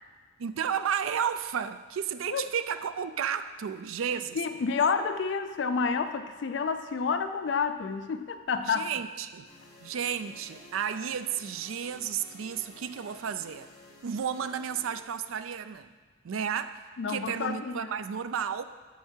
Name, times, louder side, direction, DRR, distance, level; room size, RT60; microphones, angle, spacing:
voice 1, 0.4-4.4 8.6-9.5 9.8-13.7 14.0-15.9 16.2-16.8 17.1-18.6, right 8 dB, 80° right, 11 dB, 0.4 m, -32 dB
voice 2, 4.4-8.9 17.0-17.9, left 5 dB, 60° left, 9 dB, 0.3 m, -29 dB
sound 1, 9.4-15.0, left 1 dB, 20° left, 2.0 m, -53 dB
8.1 x 6.7 x 4.4 m, 1.4 s
head